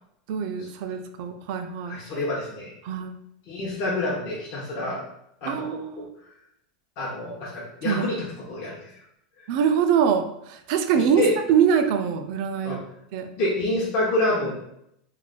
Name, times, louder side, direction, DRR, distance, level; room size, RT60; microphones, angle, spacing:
voice 1, 0.3-2.0 2.8-3.1 5.5-6.1 7.8-8.1 9.5-11.2 11.5-12.8 13.1-13.3, right 7 dB, 55° right, 7 dB, 0.3 m, -24 dB
voice 2, 1.8-2.7 3.5-5.0 5.4-5.8 7.0-8.8 10.9-11.3 12.6-12.8 13.4-14.5, left 2 dB, 45° left, -5 dB, 0.7 m, -27 dB
2.4 x 2.0 x 3.7 m, 0.76 s
supercardioid pair, 140°, 4 cm